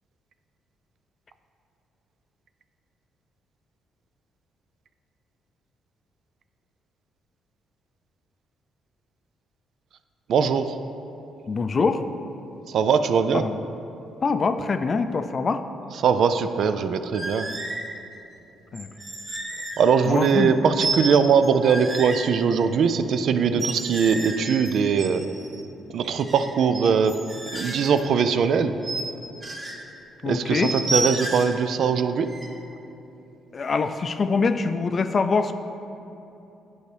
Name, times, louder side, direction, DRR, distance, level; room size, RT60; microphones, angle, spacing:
voice 1, 10.3-10.8 12.7-13.5 16.0-17.5 19.8-25.3 25.9-27.2 27.5-28.8 30.3-32.3, right 6 dB, 65° right, 10 dB, 0.3 m, -21 dB
voice 2, 11.5-12.0 13.3-13.6 14.2-15.6 18.7-18.9 20.1-20.6 30.2-30.7 33.5-35.5, left 4 dB, 40° left, 9 dB, 0.4 m, -24 dB
sound 1, 17.1-17.9 18.7-20.5 20.8-22.2 23.5-25.6 26.0-28.0 28.8-29.0 29.4-29.8 30.6-31.6 32.3-32.5, right 2 dB, 30° right, 1.2 m, -31 dB
10.5 x 4.6 x 3.4 m, 2.9 s
cardioid pair, 90°, 0 cm